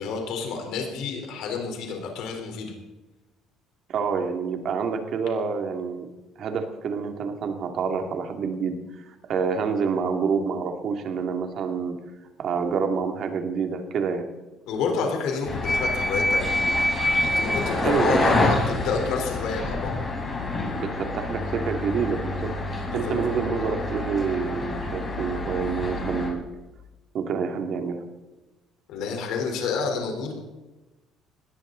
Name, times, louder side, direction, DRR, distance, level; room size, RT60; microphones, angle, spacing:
voice 1, 0.0-2.7 14.7-16.5 17.2-19.9 22.8-23.2 28.9-30.3, left 5 dB, 75° left, 2 dB, 4.1 m, -29 dB
voice 2, 3.9-6.1 6.4-8.8 9.1-12.0 12.4-14.2 17.8-18.6 20.7-22.5 22.9-26.4 27.1-28.0, right 5 dB, 50° right, 5 dB, 2.6 m, -27 dB
sound 1, 15.5-26.3, left 2 dB, 30° left, 4.6 m, -27 dB
20.0 x 15.5 x 4.0 m, 1.1 s
cardioid pair, 130°, 0 cm